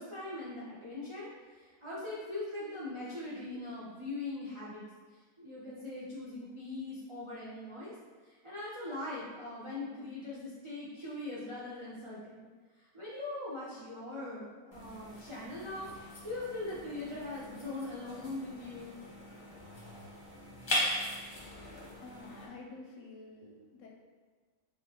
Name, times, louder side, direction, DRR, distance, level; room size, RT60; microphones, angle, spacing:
voice 1, 0.0-4.8 5.1-7.9 8.2-12.5 12.7-15.9 16.2-19.0, left 2 dB, 55° right, -8 dB, 0.3 m, -41 dB
sound 1, 14.7-22.5, left 1 dB, 35° left, 0.4 m, -40 dB
voice 2, 22.0-23.9, left 3 dB, 65° left, -1 dB, 0.9 m, -49 dB
3.5 x 3.4 x 2.9 m, 1.5 s
omnidirectional pair, 1.6 m